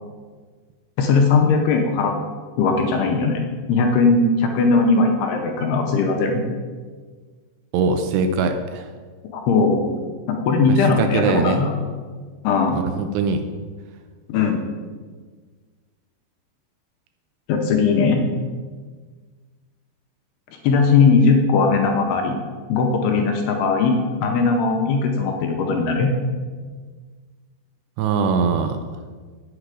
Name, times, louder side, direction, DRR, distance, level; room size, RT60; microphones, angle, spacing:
voice 1, 1.0-2.1 2.6-3.4 3.7-6.4 9.3-9.9 10.3-11.7 12.4-12.8 14.3-14.6 17.5-18.2 20.6-22.4 22.7-23.9 24.2-26.1, left 4 dB, 75° left, 2 dB, 2.6 m, -18 dB
voice 2, 7.7-8.9 10.7-11.6 12.7-13.4 28.0-28.8, right 5 dB, 80° right, 7 dB, 2.6 m, -22 dB
9.1 x 7.8 x 4.9 m, 1.5 s
omnidirectional pair, 5.3 m